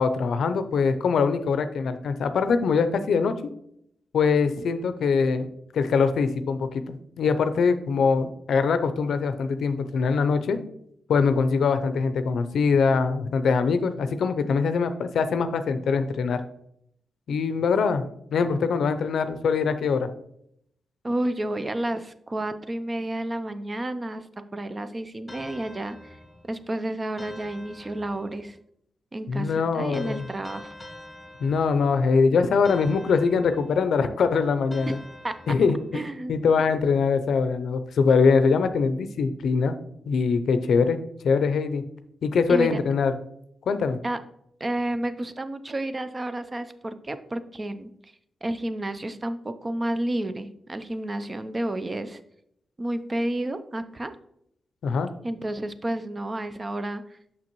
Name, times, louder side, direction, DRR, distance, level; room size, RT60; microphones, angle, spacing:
voice 1, 0.0-3.3 4.1-5.5 5.7-10.6 11.1-16.4 17.3-18.1 18.3-20.1 29.3-30.3 31.4-35.0 35.5-36.0 36.3-39.7 40.1-41.8 42.2-43.1 43.7-44.0 54.8-55.1, left 5 dB, 75° left, 10 dB, 0.5 m, -23 dB
voice 2, 21.0-26.0 26.5-28.6 29.1-30.7 34.8-34.9 35.2-35.4 35.9-36.3 42.5-42.8 44.0-44.2 44.6-48.1 48.4-52.2 52.8-54.1 55.2-57.0, right 1 dB, 30° right, 11 dB, 0.5 m, -31 dB
sound 1, 25.3-26.6 27.2-28.5 29.9-32.1 32.6-33.9 34.7-36.0, left 1 dB, 10° left, 1.2 m, -45 dB
6.1 x 6.0 x 3.0 m, 0.73 s
cardioid pair, 70°, 0 cm